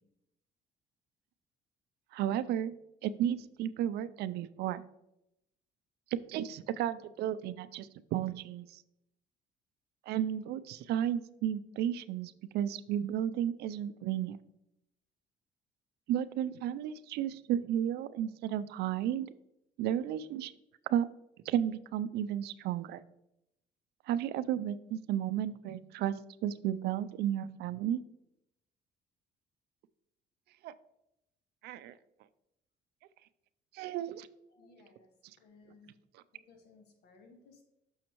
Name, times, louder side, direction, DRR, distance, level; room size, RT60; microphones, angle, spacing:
voice 1, 2.1-2.7 3.0-4.8 6.3-8.8 10.1-14.4 16.1-19.3 19.8-20.5 20.9-21.1 21.5-23.0 24.1-26.2 26.4-28.0 30.6-30.7 31.6-31.9 33.7-34.3, right 10 dB, 75° right, 15 dB, 0.4 m, -33 dB
voice 2, 34.5-35.1 35.4-36.0 36.3-37.6, left 3 dB, 75° left, 4 dB, 1.5 m, -60 dB
6.3 x 6.2 x 2.9 m, 0.84 s
cardioid pair, 110°, 17 cm